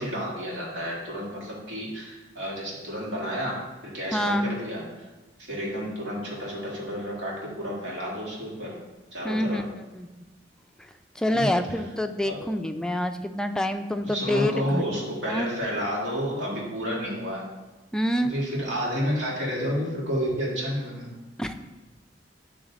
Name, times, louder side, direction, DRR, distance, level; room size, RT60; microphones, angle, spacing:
voice 1, 0.0-5.1 5.5-8.7 9.1-9.6 11.3-11.5 12.2-12.4 14.0-17.4 18.2-21.1, equal, 90° right, -5 dB, 2.2 m, -30 dB
voice 2, 4.1-4.5 9.2-9.6 9.9-10.2 11.2-14.8 15.3-15.5 17.9-18.4 21.4-21.5, left 1 dB, 5° left, 7 dB, 0.3 m, -27 dB
8.6 x 3.2 x 3.9 m, 1.1 s
head